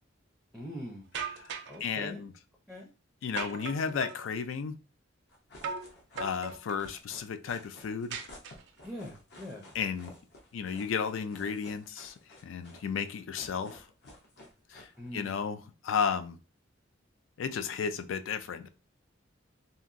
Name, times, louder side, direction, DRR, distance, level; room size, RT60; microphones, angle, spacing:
voice 1, 0.5-1.1 1.7-2.3 2.7-2.9 8.8-9.7 15.0-15.4, equal, ahead, 0.4 m, -42 dB
sound 1, 1.1-1.8 3.4-4.3 5.6-5.9 6.2-6.9 8.1-8.9, right 5 dB, 60° right, 0.4 m, -38 dB
voice 2, 1.8-2.3 3.2-4.8 6.2-8.2 9.7-10.1 10.5-12.1 12.4-13.8 14.7-14.9 15.1-16.4 17.4-18.7, left 6 dB, 85° left, 0.4 m, -33 dB
sound 2, 5.3-15.3, left 1 dB, 60° left, 0.7 m, -53 dB
2.8 x 2.4 x 2.5 m
head